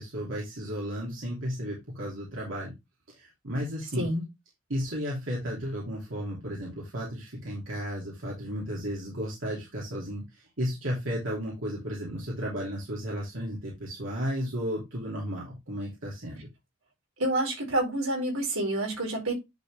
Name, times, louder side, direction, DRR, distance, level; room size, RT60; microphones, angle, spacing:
voice 1, 0.0-2.7 3.1-4.1 4.7-16.5, equal, 65° right, 2.9 m, -34 dB
voice 2, 17.2-19.3, right 1 dB, 85° right, 4.4 m, -28 dB
10.5 x 4.2 x 3.4 m
head